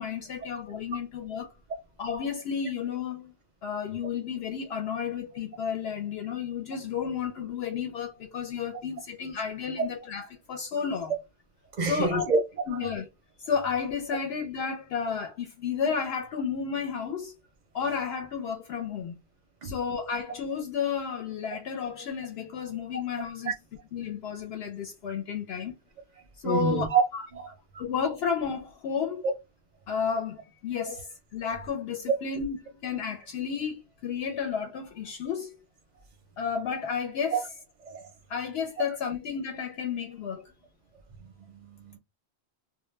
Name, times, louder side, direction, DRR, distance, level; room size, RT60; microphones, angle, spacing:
voice 1, 0.0-1.5 2.0-3.3 3.6-11.1 11.8-12.3 12.7-13.1 13.4-17.3 17.7-19.2 19.6-23.5 23.9-25.8 26.4-27.3 27.8-29.2 29.9-35.6 36.4-37.5 38.3-40.5, left 6 dB, 70° left, 0.8 m, -32 dB
voice 2, 11.8-12.4 19.6-19.7 26.4-27.0 27.3-27.5 37.3-37.4 37.8-38.0 41.5-42.0, right 4 dB, 50° right, 0.6 m, -26 dB
2.1 x 2.1 x 3.1 m
omnidirectional pair, 1.1 m